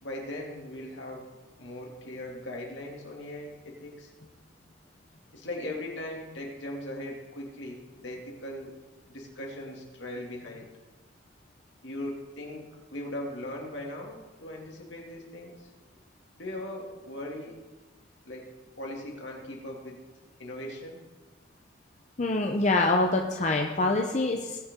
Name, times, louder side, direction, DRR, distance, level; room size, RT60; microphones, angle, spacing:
voice 1, 0.0-1.3 1.6-4.1 5.3-8.7 9.1-10.7 11.8-12.6 12.9-15.7 16.4-17.6 18.3-18.5 18.8-20.1 20.4-21.0, left 1 dB, 75° left, -1 dB, 2.5 m, -39 dB
voice 2, 22.2-24.6, left 2 dB, 40° left, 2 dB, 0.7 m, -25 dB
19.5 x 6.9 x 3.7 m, 1.2 s
head